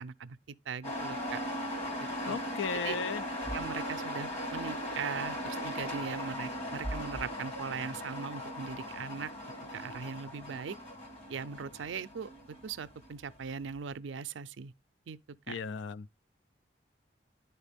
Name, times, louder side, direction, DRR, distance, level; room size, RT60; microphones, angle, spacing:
voice 1, 0.0-1.4 2.3-2.4 2.8-3.0 3.5-9.3 9.7-10.8 11.3-12.3 12.6-14.7 15.1-15.2 15.5-15.6, right 6 dB, 75° right, 0.4 m, -39 dB
sound 1, 0.8-13.6, equal, 30° left, 1.6 m, -38 dB
voice 2, 2.2-3.2 15.5-16.1, left 5 dB, 75° left, 0.4 m, -35 dB
10.5 x 4.6 x 3.4 m
head